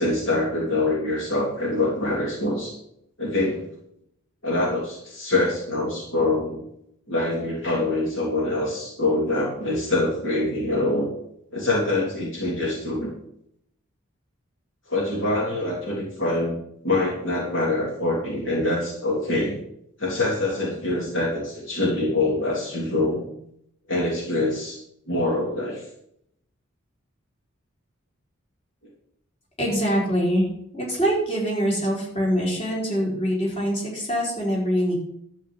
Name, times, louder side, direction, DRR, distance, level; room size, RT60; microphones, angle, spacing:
voice 1, 0.0-2.7 3.2-3.6 4.4-6.6 7.1-11.1 11.5-13.1 14.9-16.6 16.8-19.6 20.0-23.3 23.9-24.8 25.1-25.9, left 2 dB, 60° left, -4 dB, 2.9 m, -24 dB
voice 2, 29.6-30.4 30.7-34.9, equal, 30° left, -5 dB, 4.7 m, -24 dB
12.0 x 5.0 x 8.6 m, 0.75 s
head